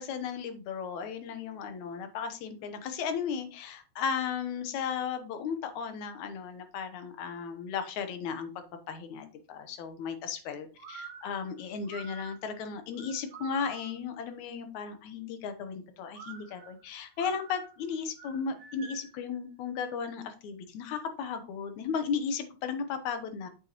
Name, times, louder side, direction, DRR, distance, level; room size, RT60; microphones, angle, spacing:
voice 1, 0.0-8.5 8.9-23.5, left 6 dB, 80° left, 8 dB, 2.4 m, -35 dB
sound 1, 10.8-14.1 16.1-19.2, right 5 dB, 65° right, 2.6 m, -48 dB
8.0 x 7.4 x 3.0 m, 0.34 s
omnidirectional pair, 3.4 m